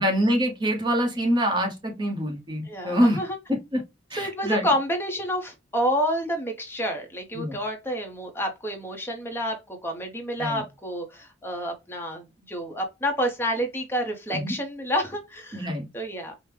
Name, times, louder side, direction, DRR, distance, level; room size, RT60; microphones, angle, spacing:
voice 1, 0.0-3.2 4.1-4.7 7.3-7.6 10.4-10.6 14.3-14.5 15.5-15.9, equal, 25° right, 0.8 m, -25 dB
voice 2, 2.6-3.4 4.2-15.7 15.9-16.3, equal, 10° left, 0.8 m, -29 dB
5.0 x 2.1 x 3.2 m
head